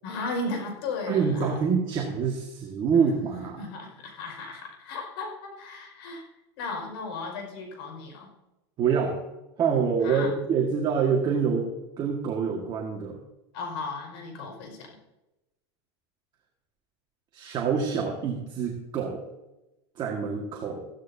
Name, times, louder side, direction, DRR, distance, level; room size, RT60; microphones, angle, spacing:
voice 1, 0.0-1.5 3.4-6.2 6.6-8.3 10.0-10.3 13.5-14.9, left 3 dB, 65° left, 2 dB, 5.5 m, -35 dB
voice 2, 1.1-3.6 8.8-9.2 9.6-11.7 12.0-13.2 17.3-19.2 20.0-20.8, right 6 dB, 30° right, 0 dB, 1.9 m, -26 dB
15.0 x 14.5 x 2.8 m, 0.98 s
supercardioid pair, 140°, 14 cm